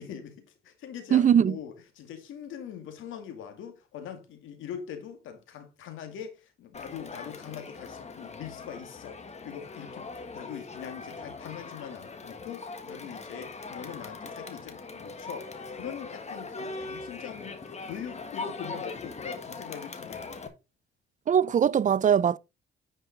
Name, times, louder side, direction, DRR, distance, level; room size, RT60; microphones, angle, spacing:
voice 1, 0.0-20.4, left 8 dB, 85° left, 2.2 m, -42 dB
voice 2, 1.1-1.5 21.3-22.4, right 8 dB, 40° right, 0.4 m, -21 dB
Crowd, 6.7-20.5, left 4 dB, 35° left, 1.6 m, -41 dB
10.0 x 5.5 x 4.0 m
cardioid pair, 90°, 20 cm